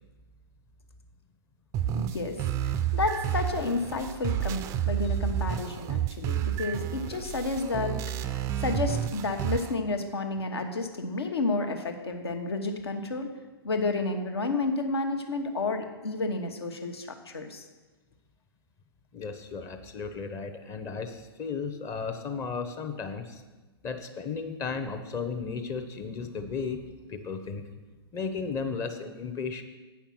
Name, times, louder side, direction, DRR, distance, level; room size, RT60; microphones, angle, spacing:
sound 1, 1.7-9.7, right 10 dB, 20° right, 0.4 m, -30 dB
voice 1, 1.9-2.3 2.6-13.3 13.6-17.6, left 3 dB, 75° left, 5 dB, 1.2 m, -31 dB
voice 2, 19.1-23.4 23.8-26.8 27.1-27.7 28.1-29.6, left 5 dB, 25° left, 7 dB, 0.7 m, -34 dB
8.5 x 5.7 x 5.9 m, 1.2 s
figure-of-eight pair, 115°, 13 cm